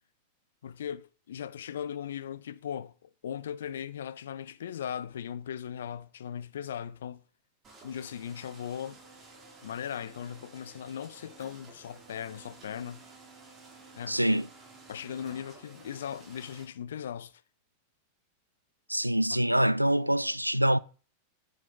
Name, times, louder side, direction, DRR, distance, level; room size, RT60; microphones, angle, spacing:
voice 1, 0.6-7.2 7.8-9.0 9.6-13.0 13.9-14.4 14.9-17.3 19.3-19.4, left 9 dB, 60° left, 0.5 m, -38 dB
sound 1, 7.6-16.6, right 3 dB, 25° right, 2.5 m, -53 dB
voice 2, 14.1-14.5 18.9-20.8, right 1 dB, 90° right, 0.3 m, -25 dB
9.3 x 4.7 x 5.8 m
figure-of-eight pair, 90°, 0 cm